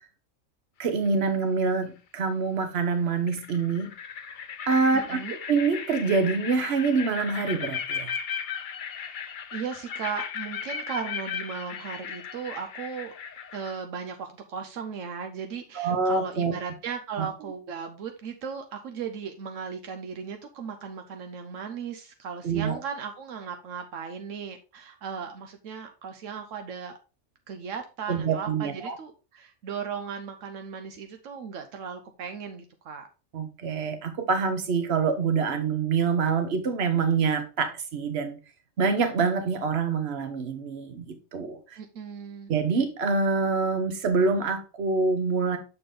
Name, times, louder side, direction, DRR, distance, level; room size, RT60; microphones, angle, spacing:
sound 1, 0.8-1.3 2.8-2.9 3.3-13.8, left 7 dB, 55° left, 0.6 m, -36 dB
voice 1, 0.8-3.9 4.7-5.2 5.5-8.1 15.7-16.5 17.2-17.3 22.4-22.8 28.1-29.0 33.3-38.4 38.8-41.6 42.5-45.6, right 4 dB, 55° right, 1.2 m, -26 dB
voice 2, 4.9-5.4 8.8-13.1 13.5-26.9 27.5-33.1 41.8-42.5, right 6 dB, 80° right, 1.0 m, -37 dB
6.7 x 4.3 x 3.7 m
omnidirectional pair, 1.3 m